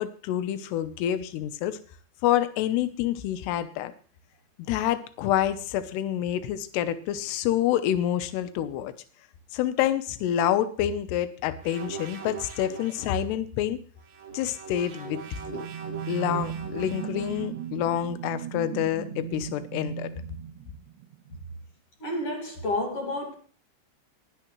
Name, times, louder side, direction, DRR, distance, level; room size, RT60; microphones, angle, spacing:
voice 1, 0.0-1.8 2.2-3.9 4.6-8.9 9.5-13.8 14.3-15.2 15.5-15.7 16.1-20.1, left 11 dB, 80° left, 2.5 m, -27 dB
sound 1, 11.6-13.2 14.0-17.6, right 6 dB, 65° right, 1.6 m, -40 dB
sound 2, 14.8-21.3, right 9 dB, 80° right, 2.7 m, -37 dB
voice 2, 22.0-23.3, left 1 dB, 45° left, 2.1 m, -30 dB
19.5 x 9.7 x 3.2 m
omnidirectional pair, 5.8 m